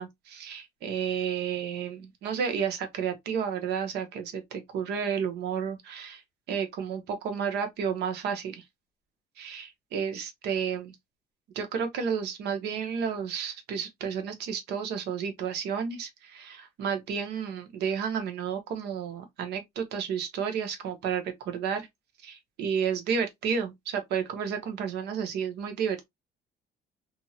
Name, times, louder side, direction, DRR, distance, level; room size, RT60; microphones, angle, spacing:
voice 1, 0.0-6.2 6.5-8.6 9.4-11.0 11.5-21.9 22.2-26.1, right 7 dB, 80° right, 1.0 m, -31 dB
2.8 x 2.8 x 2.7 m
cardioid pair, 110°, 17 cm